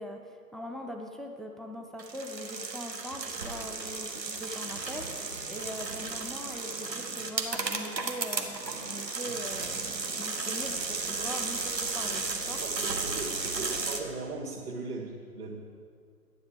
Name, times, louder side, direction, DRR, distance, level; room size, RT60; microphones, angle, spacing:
voice 1, 0.0-12.6, equal, ahead, 3 dB, 0.3 m, -41 dB
sound 1, 2.0-14.0, right 3 dB, 90° right, 1.5 m, -34 dB
voice 2, 12.8-15.6, right 3 dB, 65° right, -5 dB, 2.1 m, -38 dB
11.5 x 10.0 x 5.0 m, 2.1 s
figure-of-eight pair, 140°, 49 cm